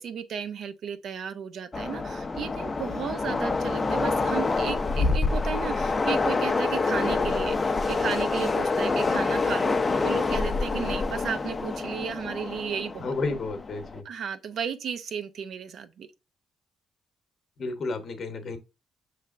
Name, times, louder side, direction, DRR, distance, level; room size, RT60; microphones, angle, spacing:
voice 1, 0.0-13.1 14.0-16.1, right 7 dB, 65° right, 0.5 m, -34 dB
Train, 1.7-14.0, left 3 dB, 30° left, 0.5 m, -27 dB
voice 2, 13.0-14.0 17.6-18.6, left 3 dB, 55° left, 0.9 m, -31 dB
5.5 x 3.3 x 2.4 m
cardioid pair, 90°, 0 cm